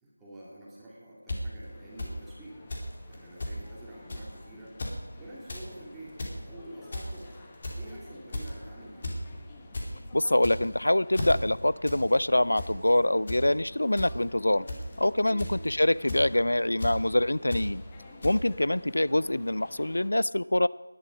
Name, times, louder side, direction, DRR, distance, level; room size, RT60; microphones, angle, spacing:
voice 1, 0.0-2.5 3.1-4.8 5.2-6.2 6.4-7.3 7.8-9.2 15.2-15.5, right 1 dB, 5° right, -9 dB, 2.5 m, -47 dB
sound 1, 1.3-1.4 2.0-2.1 2.7-2.9 3.1-3.2 3.4-3.6 4.1-4.3 4.7-5.0 5.3-5.6 6.0-6.4 6.9-7.2 7.6-7.9 8.3-8.6 9.0-9.2 9.5-9.9 10.3-10.8 11.1-11.3 11.8-12.0 12.3-12.7 13.3-13.4 14.0-14.1 14.7-14.9 15.4-15.7 16.1-16.2 16.8-16.9 17.5-17.6 18.2-18.3, left 2 dB, 35° left, 2.7 m, -34 dB
sound 2, 1.6-20.1, left 2 dB, 15° left, 1.0 m, -52 dB
voice 2, 10.1-14.6 15.0-17.8 18.2-20.7, left 1 dB, 85° left, 19 dB, 0.3 m, -25 dB
18.0 x 11.0 x 5.2 m, 1.3 s
figure-of-eight pair, 175°, 0 cm